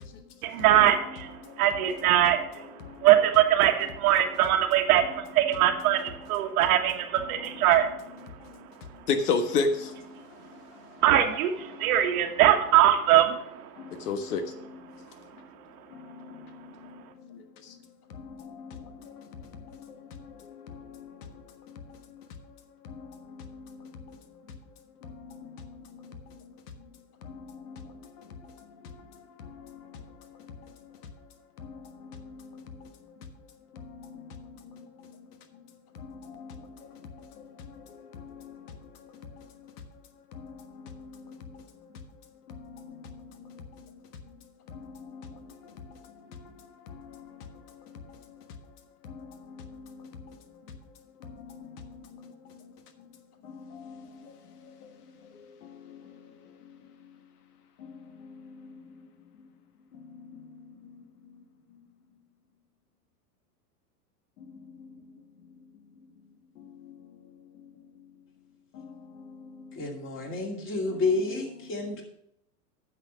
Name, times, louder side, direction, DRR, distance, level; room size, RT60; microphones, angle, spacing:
voice 1, 0.4-1.3 1.6-2.4 3.0-7.9 11.0-13.4, right 12 dB, 65° right, 5 dB, 1.5 m, -22 dB
voice 2, 9.1-10.7 11.7-12.0 13.8-15.0 15.9-17.0 17.3-17.7 18.1-22.3 22.8-24.2 25.0-26.4 27.2-29.1 29.4-30.7 31.6-32.9 33.7-35.1 35.9-39.7 40.3-41.6 42.5-43.8 44.7-48.2 49.0-50.4 51.2-52.6 53.4-54.9 55.3-56.3 57.8-59.0 60.2-60.9 64.5-64.9 66.6-67.1 68.7-70.0, left 4 dB, 75° left, 7 dB, 1.5 m, -39 dB
voice 3, 69.8-72.0, left 3 dB, 25° left, 1 dB, 2.5 m, -30 dB
9.7 x 6.2 x 6.2 m, 0.77 s
hypercardioid pair, 120°, 46 cm